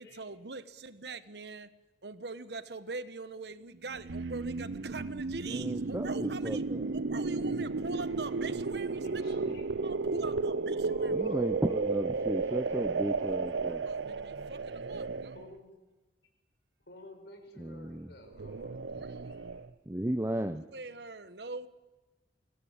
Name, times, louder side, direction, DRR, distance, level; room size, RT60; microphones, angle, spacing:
voice 1, 0.0-1.7 2.0-9.4 9.8-11.2 13.7-15.4 18.8-19.3 20.6-21.7, right 3 dB, 65° right, 13 dB, 1.2 m, -42 dB
sound 1, 3.9-15.5 18.3-19.7, right 4 dB, 90° right, 0.7 m, -33 dB
voice 2, 5.5-6.8 9.5-9.6 11.1-13.8 17.6-18.1 19.9-20.6, right 1 dB, 15° right, 8 dB, 0.6 m, -34 dB
voice 3, 9.0-9.7 10.8-11.5 12.7-12.8 13.2-13.4 15.3-15.7 16.9-19.6, left 1 dB, 70° left, 5 dB, 4.8 m, -53 dB
23.5 x 17.0 x 8.7 m, 1.2 s
head